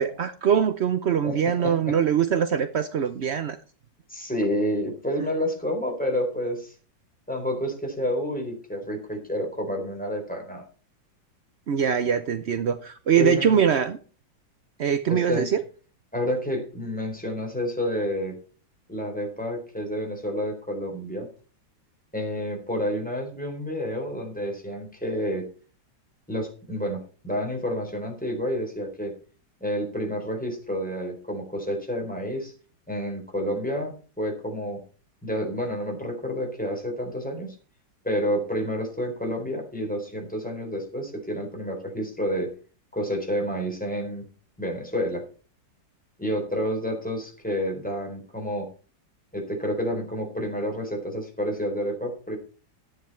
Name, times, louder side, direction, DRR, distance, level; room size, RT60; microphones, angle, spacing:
voice 1, 0.0-3.6 11.7-14.0 14.8-15.6, right 8 dB, 65° right, 11 dB, 0.6 m, -23 dB
voice 2, 1.2-2.0 4.1-6.7 7.3-10.6 13.2-13.6 15.1-15.5 16.1-18.4 18.9-21.3 22.1-25.5 26.3-29.1 29.6-32.5 32.9-34.8 35.2-37.5 38.0-42.5 42.9-44.2 44.6-45.2 46.2-48.7 49.3-52.4, equal, 5° left, 1 dB, 4.2 m, -29 dB
12.5 x 9.8 x 4.4 m, 0.37 s
omnidirectional pair, 2.0 m